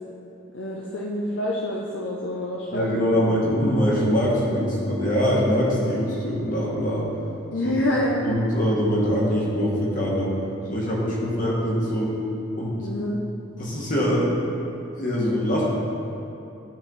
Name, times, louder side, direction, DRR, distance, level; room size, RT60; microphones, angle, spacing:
voice 1, 0.5-3.2 7.5-8.3 12.8-13.2, left 1 dB, 60° left, -3 dB, 0.6 m, -27 dB
voice 2, 2.7-7.0 8.2-10.3 10.7-12.1 12.6-12.7 13.6-14.3 15.0-15.7, equal, 40° left, -5 dB, 1.6 m, -23 dB
12.5 x 4.4 x 4.0 m, 2.8 s
head